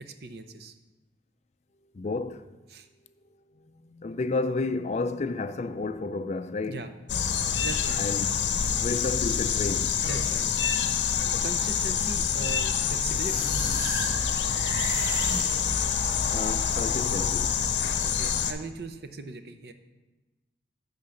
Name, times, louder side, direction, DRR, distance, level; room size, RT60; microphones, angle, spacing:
voice 1, 0.1-0.7 2.7-2.9 6.7-6.9 7.6-8.0 10.0-10.5 11.4-13.5 18.2-19.7, right 3 dB, 60° right, 0.7 m, -39 dB
voice 2, 1.9-2.5 3.8-6.9 8.0-8.4 8.8-10.0 16.3-17.6, left 3 dB, 40° left, 0.4 m, -31 dB
sound 1, 7.1-18.5, left 7 dB, 90° left, 0.6 m, -27 dB
sound 2, 13.1-16.3, equal, 15° right, 2.1 m, -33 dB
10.5 x 3.9 x 7.0 m
head